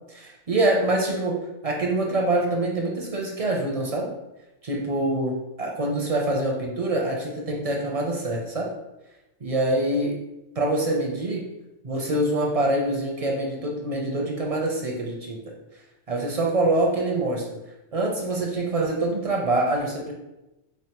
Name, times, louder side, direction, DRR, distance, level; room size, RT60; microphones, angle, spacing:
voice 1, 0.1-1.4 1.6-4.1 4.6-8.7 9.4-10.2 10.5-11.5 11.8-15.4 16.1-17.6 17.9-20.1, right 2 dB, 45° right, -1 dB, 0.4 m, -25 dB
3.8 x 3.3 x 2.9 m, 0.95 s
omnidirectional pair, 1.3 m